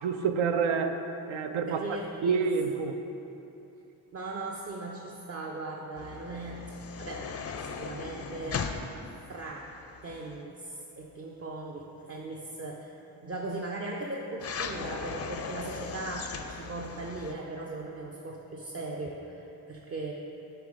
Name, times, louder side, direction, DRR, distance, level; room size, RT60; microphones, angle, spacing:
voice 1, 0.0-1.8 2.2-3.0, right 5 dB, 75° right, 7 dB, 0.6 m, -28 dB
voice 2, 1.7-2.5 4.1-6.7 7.0-7.3 7.6-8.7 9.3-9.7 10.0-20.1, right 2 dB, 30° right, -1 dB, 0.5 m, -38 dB
sound 1, 6.0-10.4 14.4-17.3, left 5 dB, 35° left, 0.4 m, -38 dB
5.8 x 3.4 x 4.8 m, 2.9 s
supercardioid pair, 50°, 48 cm